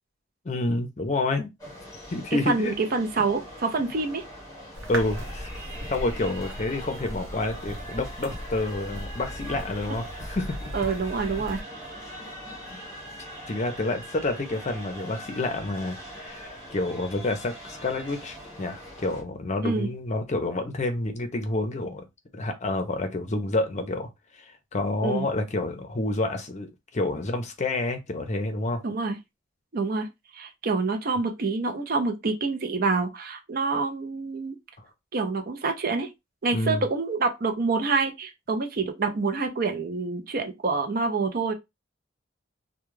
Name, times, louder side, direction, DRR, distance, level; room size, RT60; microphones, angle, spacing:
voice 1, 0.4-1.5 2.1-2.7 4.9-10.6 12.7-12.8 13.5-22.0 22.3-24.1 24.7-28.8 36.5-36.8, left 2 dB, 35° left, 0.6 m, -29 dB
sound 1, 1.6-19.2, equal, 15° left, 1.2 m, -42 dB
voice 2, 2.3-4.2 10.7-11.6 19.6-19.9 25.0-25.3 28.8-29.2 29.7-30.1 30.3-34.6 35.1-36.1 36.4-41.5, right 4 dB, 50° right, 0.5 m, -27 dB
sound 2, 4.7-11.6, equal, 75° right, 0.8 m, -38 dB
2.3 x 2.2 x 3.1 m
head